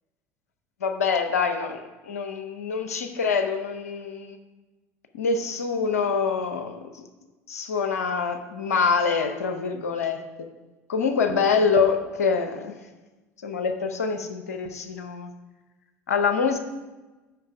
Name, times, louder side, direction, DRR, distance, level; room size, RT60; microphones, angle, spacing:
voice 1, 0.8-4.4 5.1-7.0 7.5-10.5 10.9-12.8 13.4-15.3 16.1-16.6, left 5 dB, 75° left, 8 dB, 0.7 m, -25 dB
7.9 x 4.9 x 4.9 m, 1.2 s
figure-of-eight pair, 65°, 8 cm